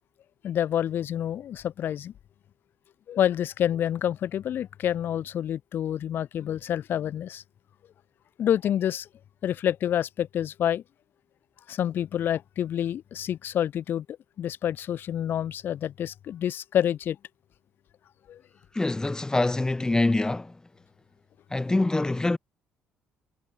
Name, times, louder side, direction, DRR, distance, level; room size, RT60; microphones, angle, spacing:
voice 1, 0.4-2.1 3.1-7.4 8.4-9.1 9.4-10.8 11.7-17.2 18.3-18.4, left 10 dB, 60° left, 0.6 m, -28 dB
voice 2, 18.7-20.5 21.5-22.4, left 2 dB, 15° left, 1.8 m, -25 dB
hypercardioid pair, 60°, 4 cm